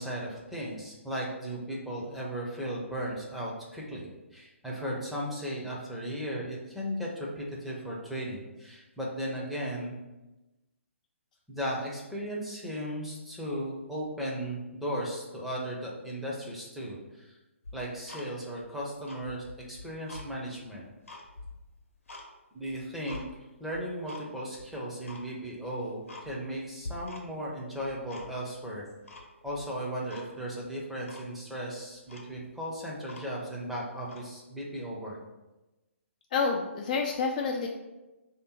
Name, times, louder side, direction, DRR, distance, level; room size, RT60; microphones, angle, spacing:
voice 1, 0.0-10.0 11.5-17.3 17.7-20.9 22.5-23.2 23.6-28.8 29.4-35.2, equal, ahead, -5 dB, 0.6 m, -36 dB
Tick-tock, 17.6-18.7 19.0-20.3 20.7-22.3 22.7-23.3 23.7-24.3 24.5-24.6 25.0-25.3 25.7-25.8 26.1-26.6 26.8-27.5 27.8-28.6 29.1-29.6 30.1-30.3 30.6-30.7 31.1-31.3 31.8-31.9 32.1-33.6 34.0-34.3, left 2 dB, 75° left, 0.9 m, -45 dB
voice 2, 36.3-37.7, left 4 dB, 35° left, 1 dB, 0.4 m, -28 dB
3.3 x 2.8 x 4.4 m, 1.1 s
figure-of-eight pair, 135°, 7 cm